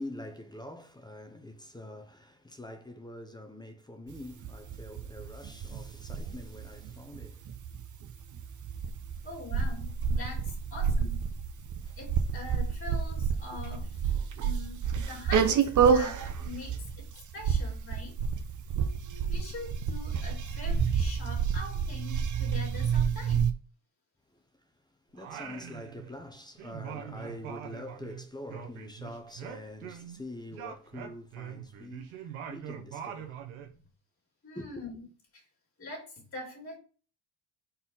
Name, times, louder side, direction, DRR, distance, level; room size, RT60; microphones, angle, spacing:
voice 1, 0.0-7.4 11.8-12.0 25.1-33.4 34.5-34.8, left 1 dB, 10° left, 0.8 m, -45 dB
sound 1, 4.1-23.5, right 6 dB, 40° right, 0.8 m, -29 dB
voice 2, 9.2-11.3 12.0-17.1 17.3-18.2 19.3-23.5 34.4-35.1 35.3-35.4 35.8-36.8, left 3 dB, 25° left, 2.6 m, -44 dB
Singing, 25.2-26.3 26.6-30.2 30.5-33.7, right 9 dB, 80° right, 1.2 m, -43 dB
4.3 x 4.3 x 5.5 m
cardioid pair, 115°, 48 cm